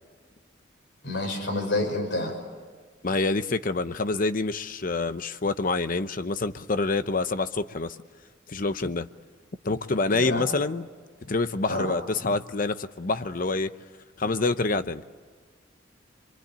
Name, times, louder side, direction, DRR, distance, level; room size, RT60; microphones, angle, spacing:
voice 1, 1.0-2.3 10.1-10.5 11.7-11.9, left 2 dB, 70° left, 2 dB, 6.3 m, -28 dB
voice 2, 3.0-8.0 8.5-9.1 9.6-10.9 11.3-13.7 14.2-15.0, left 3 dB, 45° left, 12 dB, 0.8 m, -27 dB
26.5 x 23.5 x 8.8 m, 1.5 s
head